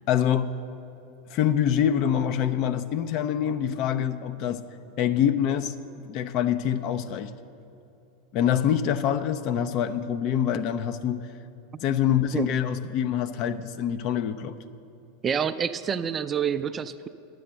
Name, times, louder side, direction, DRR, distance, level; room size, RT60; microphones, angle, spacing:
voice 1, 0.1-0.5 1.3-4.6 5.0-5.7 6.1-7.3 8.3-11.2 11.8-14.5, left 9 dB, 50° left, 11 dB, 0.5 m, -25 dB
voice 2, 15.2-17.1, right 7 dB, 25° right, 12 dB, 0.4 m, -27 dB
10.0 x 7.7 x 7.5 m, 2.7 s
figure-of-eight pair, 85°, 0 cm